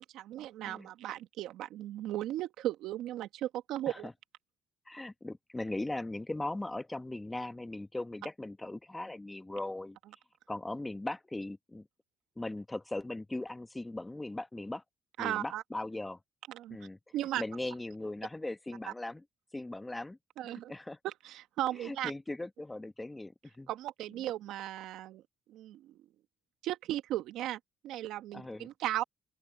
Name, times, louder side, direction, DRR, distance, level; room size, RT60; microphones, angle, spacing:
voice 1, 0.0-4.1 15.2-15.6 16.5-16.8 17.1-17.4 20.4-20.7 21.0-22.1 23.7-25.2 25.5-25.9 26.6-29.0, right 13 dB, 75° right, 1.8 m, -36 dB
voice 2, 4.9-10.0 10.5-11.9 12.4-14.8 15.2-16.2 16.7-17.0 17.4-19.2 19.5-20.2 20.4-21.0 21.8-23.7 28.3-28.7, left 2 dB, 15° left, 1.2 m, -39 dB
open air
supercardioid pair, 60°, 0 cm